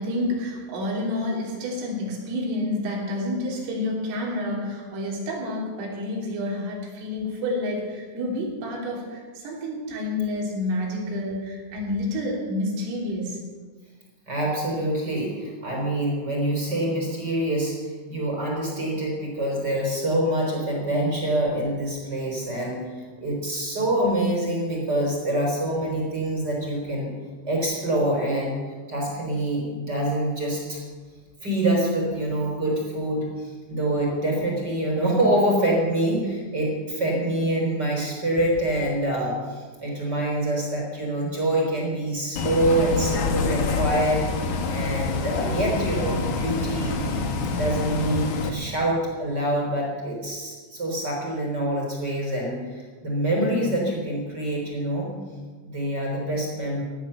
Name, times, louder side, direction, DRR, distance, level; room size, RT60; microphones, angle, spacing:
voice 1, 0.0-13.4, left 1 dB, 80° right, -2 dB, 6.0 m, -29 dB
voice 2, 14.3-27.1 27.4-28.6 28.9-30.8 31.4-46.9 47.5-55.1 55.6-56.8, right 1 dB, 25° right, -1 dB, 3.8 m, -26 dB
Bus, 42.4-48.5, left 4 dB, 65° left, 1.9 m, -26 dB
17.0 x 12.0 x 6.9 m, 1.4 s
omnidirectional pair, 5.7 m